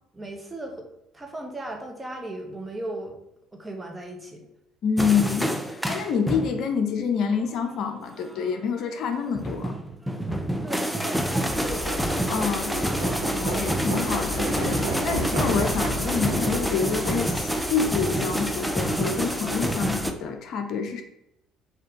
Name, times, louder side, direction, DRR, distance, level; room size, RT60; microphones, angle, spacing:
voice 1, 0.1-0.9 1.1-3.2 3.5-4.5 10.6-11.9 12.6-13.0 13.2-13.6, right 1 dB, 15° right, 2 dB, 1.0 m, -37 dB
voice 2, 4.8-9.7 12.3-12.7 13.4-17.3 17.7-21.0, left 6 dB, 60° left, 6 dB, 0.5 m, -27 dB
sound 1, 5.0-6.6 7.2-7.5 9.0-20.1, equal, ahead, 0.5 m, -28 dB
Livestock farm animals working animals, 11.4-20.1, right 1 dB, 85° right, 1.3 m, -32 dB
4.4 x 2.8 x 3.7 m, 0.83 s
hypercardioid pair, 60°, 0 cm